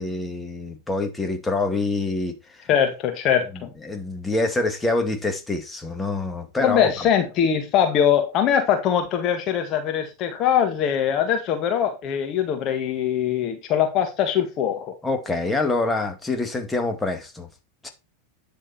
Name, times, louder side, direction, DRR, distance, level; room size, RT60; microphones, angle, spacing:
voice 1, 0.0-2.7 3.5-7.1 15.0-17.5 17.8-17.9, left 2 dB, 10° left, 2.4 m, -26 dB
voice 2, 2.7-3.5 6.6-14.9, left 8 dB, 40° left, 1.7 m, -22 dB
10.0 x 6.6 x 4.4 m
figure-of-eight pair, 90°, 0 cm